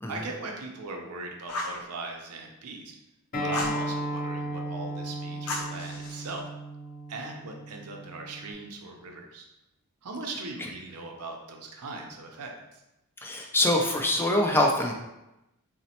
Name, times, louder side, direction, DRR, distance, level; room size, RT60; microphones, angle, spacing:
voice 1, 0.1-2.9 3.4-6.5 7.1-9.5 10.0-12.8, right 3 dB, 85° right, 2 dB, 0.6 m, -39 dB
Fire, 1.5-1.8 3.5-3.8 5.5-6.4, left 2 dB, 85° left, 0.6 m, -34 dB
Acoustic guitar, 3.3-8.5, right 1 dB, 40° left, 0.9 m, -35 dB
voice 2, 13.2-14.9, left 1 dB, 10° left, 0 dB, 0.4 m, -24 dB
4.0 x 2.1 x 2.8 m, 0.93 s
head